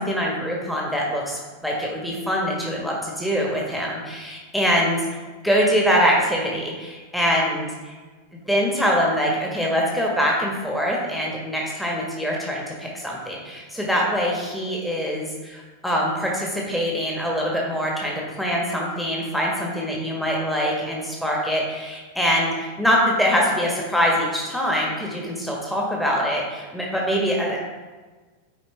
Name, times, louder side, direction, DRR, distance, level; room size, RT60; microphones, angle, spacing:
voice 1, 0.0-5.0 5.4-7.9 8.3-27.6, equal, 5° left, -3 dB, 1.4 m, -24 dB
9.0 x 4.8 x 3.3 m, 1.3 s
figure-of-eight pair, 90°, 0 cm